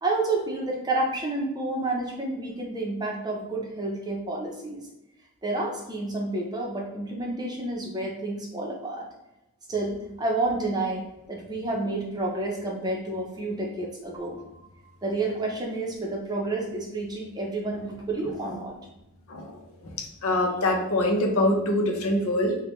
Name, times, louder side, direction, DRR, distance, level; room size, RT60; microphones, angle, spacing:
voice 1, 0.0-4.8 5.4-9.1 9.7-14.6 15.0-18.8, right 2 dB, 20° right, -1 dB, 0.6 m, -30 dB
voice 2, 20.2-22.6, left 1 dB, 75° left, 2 dB, 0.7 m, -24 dB
4.9 x 2.2 x 3.1 m, 0.92 s
head